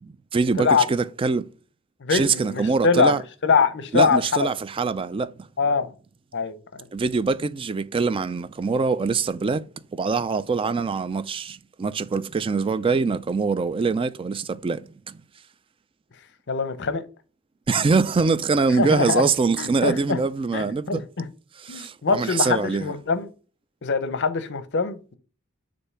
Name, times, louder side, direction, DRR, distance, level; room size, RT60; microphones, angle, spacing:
voice 1, 0.0-1.4 2.1-3.2 3.9-5.5 6.9-9.6 9.9-15.2 17.7-21.0 21.6-22.9, right 4 dB, 25° right, 0.3 m, -24 dB
voice 2, 2.0-4.5 5.6-5.9 6.3-6.9 16.5-17.0 18.8-19.2 19.6-20.2 20.5-21.2 21.7-23.3 23.8-25.2, left 5 dB, 55° left, 0.7 m, -23 dB
6.6 x 2.7 x 5.6 m
head